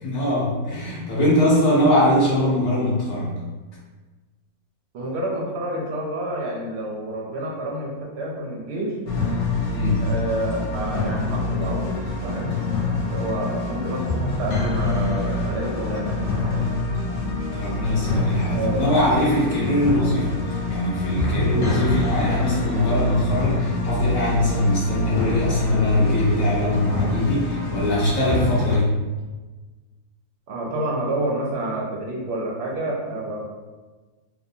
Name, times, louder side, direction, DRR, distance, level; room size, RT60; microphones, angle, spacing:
voice 1, 0.0-3.4 9.7-10.0 17.5-28.9, left 1 dB, 85° left, -6 dB, 0.3 m, -21 dB
voice 2, 4.9-9.0 10.0-12.6 13.1-16.6 18.5-18.8 30.5-33.4, right 1 dB, 65° right, -2 dB, 0.7 m, -29 dB
sound 1, 9.1-28.8, left 2 dB, 70° left, 0.9 m, -26 dB
2.6 x 2.0 x 2.6 m, 1.3 s
omnidirectional pair, 1.6 m